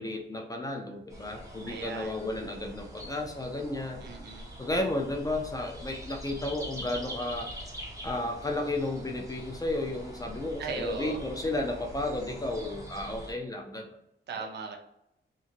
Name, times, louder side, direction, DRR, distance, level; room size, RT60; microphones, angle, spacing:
voice 1, 0.0-4.0 4.6-7.5 8.0-13.8, left 2 dB, 20° left, 2 dB, 0.4 m, -33 dB
sound 1, 1.1-13.3, equal, 15° right, 0.7 m, -44 dB
voice 2, 1.7-2.2 4.0-4.5 10.6-11.2 14.3-14.8, right 5 dB, 60° right, 2 dB, 0.6 m, -38 dB
2.9 x 2.5 x 2.5 m, 0.79 s
wide cardioid pair, 130°, 20 cm